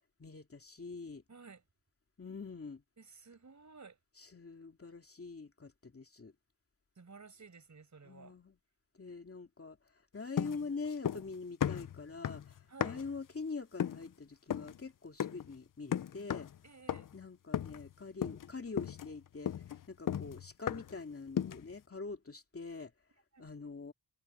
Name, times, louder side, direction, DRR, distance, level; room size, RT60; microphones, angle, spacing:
voice 1, 0.2-1.2 2.2-2.8 4.2-6.3 8.0-8.6 9.0-9.8 10.1-16.5 17.1-19.5 19.9-22.9 23.4-23.9, left 4 dB, 35° left, 2.8 m, -44 dB
voice 2, 1.3-1.6 3.0-4.0 7.0-8.4 12.7-13.0 16.6-17.1 23.3-23.5, right 4 dB, 40° right, 5.4 m, -54 dB
sound 1, 10.4-11.3 11.6-13.2 13.8-14.1 14.5-14.8 15.2-15.5 15.9-16.6 16.9-17.2 17.5-17.9 18.2-18.5 18.8-21.0 21.4-21.7, left 9 dB, 50° left, 0.6 m, -36 dB
wide cardioid pair, 100°, 42 cm